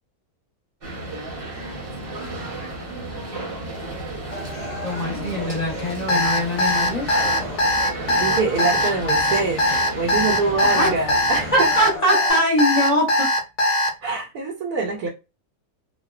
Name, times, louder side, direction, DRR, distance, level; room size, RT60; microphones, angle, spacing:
sound 1, 0.8-12.0, right 2 dB, 45° right, 0.9 m, -33 dB
sound 2, 4.3-12.3, left 1 dB, 55° left, 1.0 m, -38 dB
voice 1, 4.8-7.1 10.6-10.9 11.5-13.3, equal, 30° left, 1.1 m, -22 dB
Alarm, 6.1-13.9, left 1 dB, 80° left, 1.1 m, -20 dB
voice 2, 8.1-9.6 10.0-11.7 14.0-15.1, right 4 dB, 85° right, 1.1 m, -24 dB
2.6 x 2.2 x 2.2 m
omnidirectional pair, 1.6 m